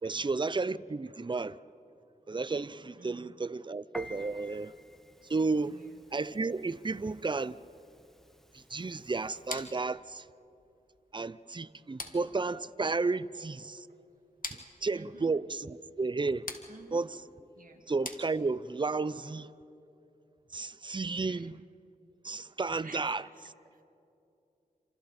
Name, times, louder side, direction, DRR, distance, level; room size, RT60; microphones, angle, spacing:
voice 1, 0.0-1.6 2.3-4.7 5.3-5.8 6.1-7.6 8.5-10.2 11.1-13.9 14.5-16.5 16.9-17.2 17.9-19.5 20.5-21.6 22.2-23.2, right 3 dB, 30° right, 0.6 m, -32 dB
voice 2, 3.0-3.3 5.6-5.9 13.9-14.0 14.6-15.3 16.7-17.1 17.6-17.8 21.2-21.5 22.8-23.8, right 3 dB, 60° right, 2.3 m, -53 dB
Piano, 3.9-9.8, left 1 dB, ahead, 1.2 m, -52 dB
sound 1, 9.5-18.8, left 3 dB, 60° left, 2.0 m, -47 dB
28.0 x 26.5 x 4.3 m
wide cardioid pair, 55°, 16 cm